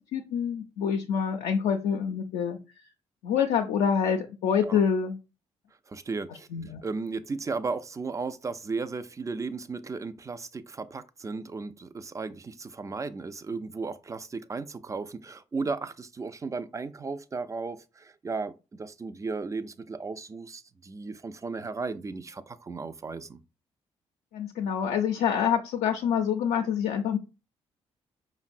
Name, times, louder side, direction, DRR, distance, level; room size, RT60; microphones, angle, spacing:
voice 1, 0.1-2.6 3.2-5.2 6.5-6.8 24.3-27.2, left 7 dB, 75° left, 0.4 m, -26 dB
voice 2, 5.9-6.5 6.8-23.4, right 4 dB, 25° right, 0.3 m, -35 dB
5.1 x 2.0 x 2.5 m
hypercardioid pair, 45°, 13 cm